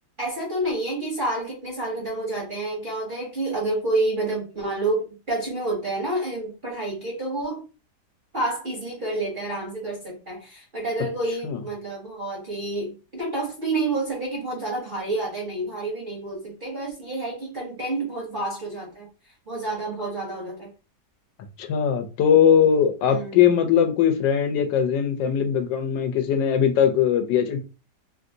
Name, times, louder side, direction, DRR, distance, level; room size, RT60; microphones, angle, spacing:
voice 1, 0.2-7.6 8.3-19.1 19.5-20.7 23.0-23.4, right 2 dB, 45° right, -2 dB, 0.7 m, -29 dB
voice 2, 21.6-27.6, left 8 dB, 85° left, 7 dB, 1.3 m, -20 dB
3.2 x 2.6 x 2.6 m, 0.32 s
omnidirectional pair, 1.9 m